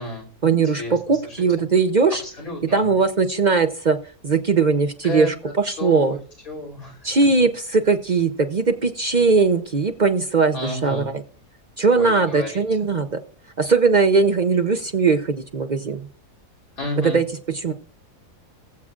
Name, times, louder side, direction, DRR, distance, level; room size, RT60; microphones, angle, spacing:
voice 1, 0.4-2.2 2.7-4.0 4.2-5.3 5.6-6.2 7.0-11.0 11.8-13.2 13.6-16.1 17.0-17.2 17.5-17.7, right 4 dB, 55° right, 7 dB, 0.5 m, -19 dB
voice 2, 1.3-1.7 2.2-2.9 5.0-5.5 5.8-6.2 6.5-7.1 10.5-11.1 12.0-12.6 16.8-17.2, left 2 dB, 65° left, -2 dB, 3.8 m, -31 dB
20.5 x 7.4 x 2.4 m, 0.41 s
omnidirectional pair, 1.6 m